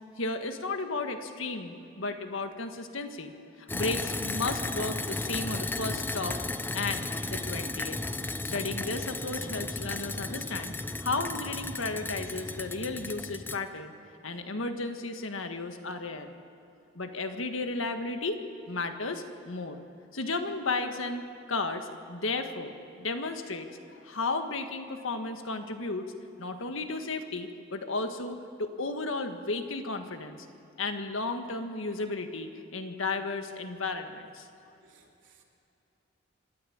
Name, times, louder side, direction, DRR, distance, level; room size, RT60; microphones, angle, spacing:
voice 1, 0.2-3.3 3.7-6.4 6.7-8.0 8.5-10.7 11.0-13.9 14.2-16.3 16.9-18.4 18.7-19.8 20.1-21.2 21.5-26.1 26.4-30.4 30.8-34.5, left 3 dB, 85° left, 6 dB, 1.7 m, -34 dB
sound 1, 3.7-13.6, left 2 dB, 10° left, 0.5 m, -34 dB
voice 2, 34.8-35.4, right 6 dB, 75° right, 0 dB, 3.0 m, -61 dB
26.5 x 12.0 x 8.8 m, 2.8 s
head